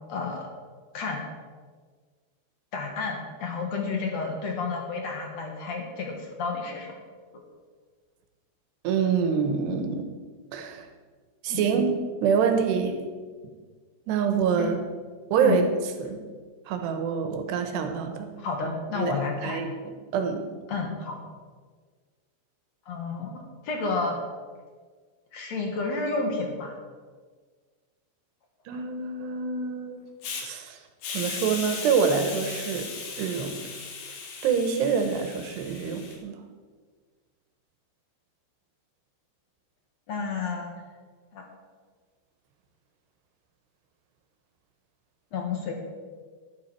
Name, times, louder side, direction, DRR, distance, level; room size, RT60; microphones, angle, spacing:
voice 1, 0.1-0.5 0.9-1.2 2.7-6.9 11.5-11.6 14.6-14.7 15.4-15.6 18.4-19.6 20.7-21.2 22.9-24.2 25.3-26.8 40.1-40.7 41.3-41.4 45.3-45.7, left 4 dB, 60° left, 1 dB, 1.9 m, -31 dB
voice 2, 8.8-10.1 10.5-10.9 11.4-13.0 14.1-14.8 15.3-15.7 16.0-16.2 16.7-18.3 19.0-19.1 19.4-20.5 28.7-30.0 30.4-30.8 31.1-32.9 33.2-33.6 34.4-36.4, right 6 dB, 75° right, 6 dB, 3.2 m, -26 dB
Hiss, 30.2-30.4 31.0-36.2, left 5 dB, 90° left, 4.2 m, -37 dB
12.0 x 12.0 x 4.6 m, 1.5 s
omnidirectional pair, 5.1 m